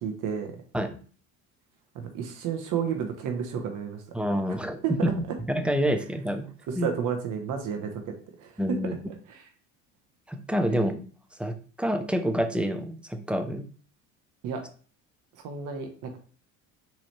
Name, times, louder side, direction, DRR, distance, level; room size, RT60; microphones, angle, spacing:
voice 1, 0.0-0.6 1.9-4.0 4.8-4.9 6.7-8.1 8.4-8.6 9.3-9.4 10.7-10.8 14.4-14.6 15.4-16.2, right 7 dB, 50° right, 4 dB, 0.9 m, -31 dB
voice 2, 4.1-4.8 5.5-6.9 8.6-8.9 10.3-10.9 11.4-13.6, equal, 5° right, 7 dB, 0.4 m, -28 dB
4.2 x 2.9 x 3.0 m, 0.41 s
hypercardioid pair, 75°, 42 cm